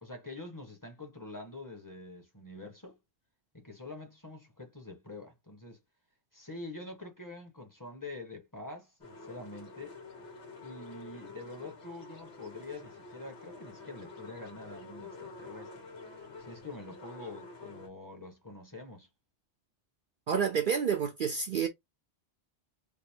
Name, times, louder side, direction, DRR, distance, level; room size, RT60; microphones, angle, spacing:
voice 1, 0.0-3.0 3.5-5.8 6.3-10.0 10.6-15.7 16.4-19.1, left 2 dB, 20° left, 0.9 m, -45 dB
sound 1, 9.0-17.9, left 3 dB, 85° left, 1.5 m, -48 dB
voice 2, 20.3-21.7, right 7 dB, 55° right, 0.6 m, -29 dB
3.5 x 2.0 x 4.3 m
omnidirectional pair, 1.1 m